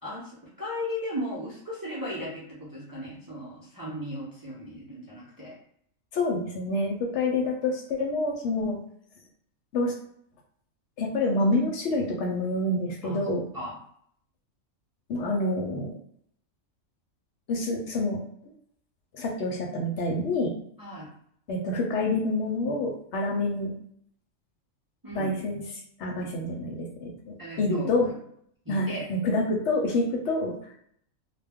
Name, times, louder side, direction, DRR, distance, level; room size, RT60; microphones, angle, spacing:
voice 1, 0.0-5.5 13.0-13.7 20.8-21.1 25.0-25.6 26.1-26.3 27.4-27.9 28.6-29.1, left 1 dB, 25° right, -6 dB, 0.5 m, -36 dB
voice 2, 6.1-8.8 9.7-9.9 11.0-13.4 15.1-15.9 17.5-18.2 19.1-20.5 21.5-23.7 25.1-25.6 26.0-28.1 28.7-30.5, left 2 dB, 65° left, 0 dB, 0.8 m, -27 dB
2.2 x 2.1 x 3.4 m, 0.66 s
omnidirectional pair, 1.4 m